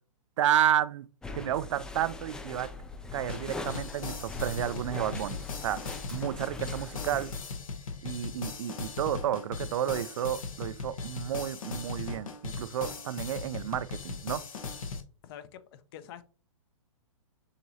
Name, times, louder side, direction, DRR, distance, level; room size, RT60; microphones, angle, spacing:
voice 1, 0.4-1.1 1.3-2.7 3.1-5.8 6.1-7.4 8.0-14.4, right 11 dB, 65° right, 0.4 m, -31 dB
sound 1, 1.2-7.4, left 3 dB, 5° left, 0.3 m, -41 dB
sound 2, 3.3-15.0, left 4 dB, 80° left, 1.1 m, -39 dB
voice 2, 15.2-16.2, left 10 dB, 45° left, 0.6 m, -46 dB
6.5 x 3.0 x 2.7 m
hypercardioid pair, 130°, 17 cm